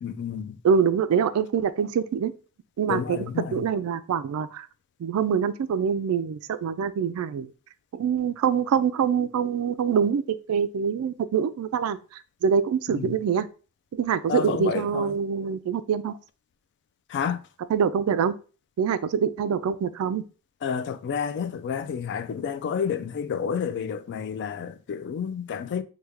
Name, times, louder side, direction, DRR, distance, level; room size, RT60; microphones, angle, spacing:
voice 1, 0.0-0.6 2.9-3.7 12.9-13.2 14.3-15.2 17.1-17.4 20.6-25.8, left 7 dB, 55° left, 0.3 m, -30 dB
voice 2, 0.6-2.3 2.8-3.3 3.5-4.7 5.0-7.5 7.9-13.5 13.9-16.2 17.7-18.3 18.8-20.2, right 7 dB, 75° right, 0.3 m, -25 dB
3.2 x 2.2 x 3.4 m
head